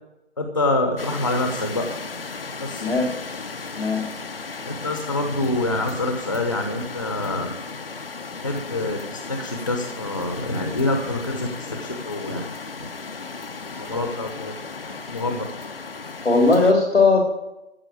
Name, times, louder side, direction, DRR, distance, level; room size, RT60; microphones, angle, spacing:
voice 1, 0.4-1.8 2.6-2.8 4.7-7.5 8.4-12.4 13.8-14.5 14.8-15.4, left 2 dB, 30° left, 3 dB, 1.0 m, -26 dB
sound 1, 1.0-16.7, left 4 dB, 55° left, 1.0 m, -35 dB
voice 2, 16.2-17.3, left 3 dB, 85° left, 0 dB, 3.3 m, -18 dB
14.5 x 5.7 x 8.5 m, 0.92 s
figure-of-eight pair, 175°, 35 cm